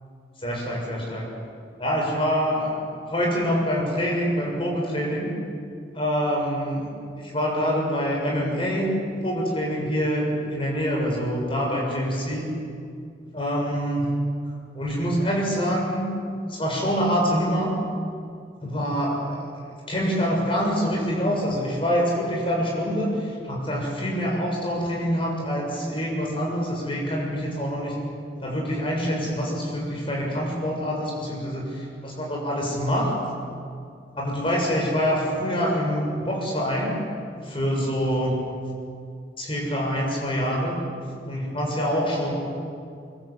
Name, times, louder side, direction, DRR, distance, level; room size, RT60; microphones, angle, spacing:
voice 1, 0.4-1.3 1.8-5.3 5.9-6.9 7.2-12.5 13.3-14.1 14.7-16.1 16.5-17.7 18.6-19.5 19.9-28.0 28.4-33.2 34.1-37.0 37.4-38.4 39.4-40.8 41.3-42.3, equal, 30° left, -1 dB, 7.1 m, -25 dB
24.5 x 23.5 x 8.6 m, 2.4 s
head